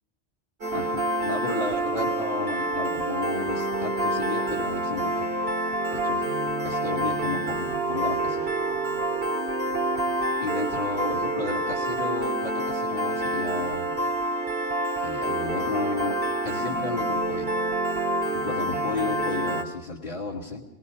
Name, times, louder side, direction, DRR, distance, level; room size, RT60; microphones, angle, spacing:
Piano, 0.6-19.6, right 1 dB, 60° right, 2.7 m, -27 dB
voice 1, 0.7-5.3 5.9-6.2 6.6-8.5 10.4-13.9 15.0-17.5 18.3-20.6, left 3 dB, 50° left, -4 dB, 2.6 m, -33 dB
24.5 x 18.5 x 6.9 m, 0.92 s
omnidirectional pair, 1.1 m